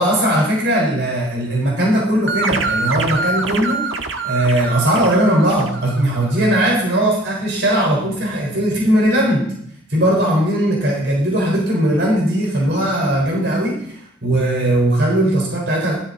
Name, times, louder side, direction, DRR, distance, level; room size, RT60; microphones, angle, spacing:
voice 1, 0.0-9.5 9.9-16.0, right 1 dB, 65° right, -1 dB, 4.1 m, -18 dB
sound 1, 2.3-6.6, right 3 dB, 85° right, 1.4 m, -25 dB
16.5 x 13.0 x 3.9 m, 0.65 s
head